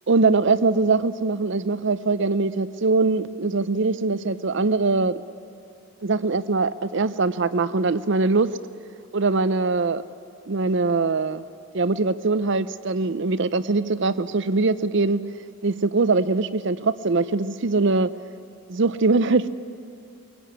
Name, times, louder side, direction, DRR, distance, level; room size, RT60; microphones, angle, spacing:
voice 1, 0.1-5.2 6.0-8.5 9.1-10.0 10.5-11.4 11.7-15.2 15.6-18.1 18.7-19.5, right 3 dB, 60° right, 14 dB, 0.6 m, -22 dB
22.0 x 17.0 x 9.6 m, 2.7 s
head